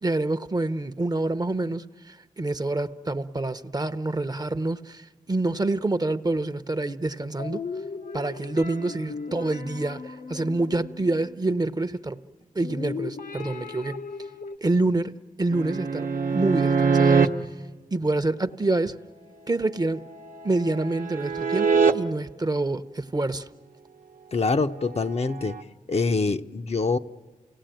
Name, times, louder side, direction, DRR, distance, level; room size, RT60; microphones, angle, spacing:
voice 1, 0.0-7.6 8.1-12.2 12.5-14.0 14.6-15.1 15.4-17.3 17.9-19.0 19.5-20.0 20.4-23.5, right 2 dB, 30° right, 0.8 m, -27 dB
sound 1, 7.4-11.6 12.6-14.6, left 5 dB, 80° left, 1.0 m, -37 dB
sound 2, 15.5-17.3 20.0-21.9 25.4-25.6, right 5 dB, 75° right, 0.9 m, -23 dB
voice 2, 24.3-25.6 25.9-27.0, left 4 dB, 50° left, 0.7 m, -25 dB
28.5 x 18.0 x 9.0 m
cardioid pair, 55°, 14 cm